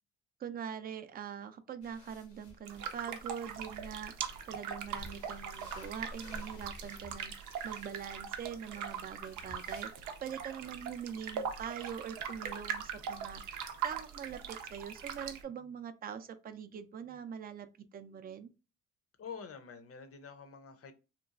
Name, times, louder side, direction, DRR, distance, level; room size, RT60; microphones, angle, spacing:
voice 1, 0.4-18.5, right 8 dB, 30° right, 0.4 m, -43 dB
sound 1, 1.8-9.9, left 1 dB, 75° left, 0.9 m, -53 dB
sound 2, 2.7-15.4, right 7 dB, 85° right, 0.5 m, -41 dB
voice 2, 19.2-20.9, left 6 dB, 50° left, 0.6 m, -47 dB
2.9 x 2.3 x 2.4 m
cardioid pair, 70°, 30 cm